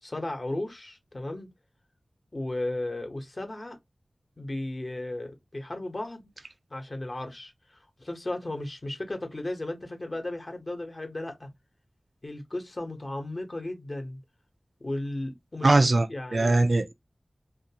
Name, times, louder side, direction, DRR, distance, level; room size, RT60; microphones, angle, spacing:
voice 1, 0.0-1.5 2.3-3.8 4.4-6.2 6.7-11.5 12.2-14.2 14.8-15.8 16.1-16.7, left 1 dB, 50° left, 0.8 m, -35 dB
voice 2, 15.6-16.9, right 2 dB, 65° right, 0.3 m, -21 dB
2.5 x 2.3 x 2.7 m
wide cardioid pair, 50°, 0 cm